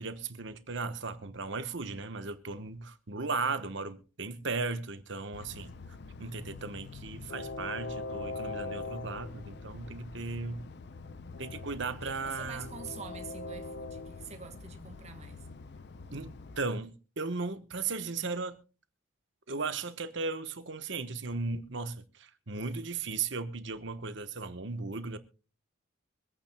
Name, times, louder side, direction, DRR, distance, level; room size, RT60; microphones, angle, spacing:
voice 1, 0.0-5.7 6.2-10.6 11.4-12.8 16.1-18.6 19.5-25.2, right 4 dB, 60° right, 1.1 m, -36 dB
Train, 5.3-16.6, left 3 dB, 50° left, 0.5 m, -43 dB
voice 2, 12.0-15.4, right 5 dB, 30° right, 1.4 m, -46 dB
25.0 x 9.0 x 2.2 m
head